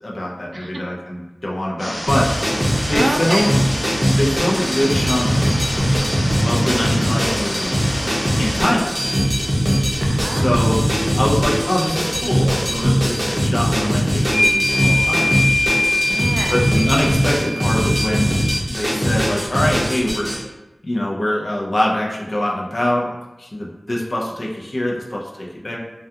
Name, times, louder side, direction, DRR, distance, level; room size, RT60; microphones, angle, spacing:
voice 1, 0.0-2.3 2.9-3.6 4.1-5.5 6.4-7.8 8.4-9.0 10.3-10.8 11.2-15.4 16.5-18.4 18.7-20.3 20.8-23.1 23.4-25.8, left 1 dB, 55° left, -2 dB, 0.5 m, -23 dB
sound 1, 1.8-8.7, equal, 70° left, 0.9 m, -28 dB
sound 2, 2.1-20.4, equal, 15° right, 0.7 m, -20 dB
voice 2, 2.9-3.4 10.0-11.2 16.0-16.7, right 1 dB, 60° right, 2 dB, 0.3 m, -29 dB
sound 3, 14.2-18.5, left 1 dB, 30° left, 1.0 m, -22 dB
2.3 x 2.3 x 2.7 m, 1.1 s
wide cardioid pair, 45°, 0 cm